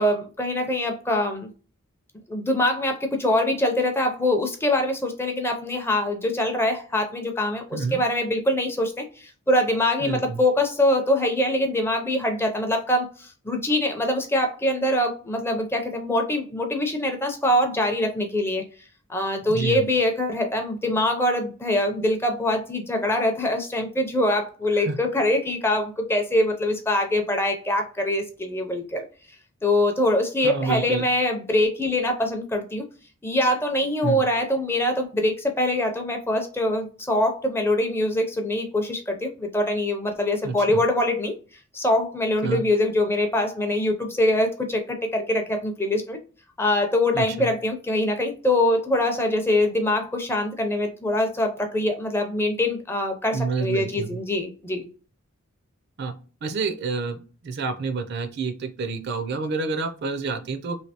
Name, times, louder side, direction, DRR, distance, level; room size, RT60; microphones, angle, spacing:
voice 1, 0.0-1.5 2.3-18.7 19.1-29.0 29.6-32.8 33.2-41.4 41.7-46.2 46.6-54.9, left 1 dB, 10° left, 4 dB, 0.5 m, -24 dB
voice 2, 10.0-10.4 19.5-19.8 24.9-25.0 30.4-31.1 34.0-34.2 40.4-40.8 42.4-42.6 47.1-47.5 53.3-54.2 56.0-56.1 56.4-57.2 57.4-60.8, right 4 dB, 50° right, 8 dB, 0.4 m, -28 dB
3.2 x 2.7 x 2.8 m, 0.37 s
head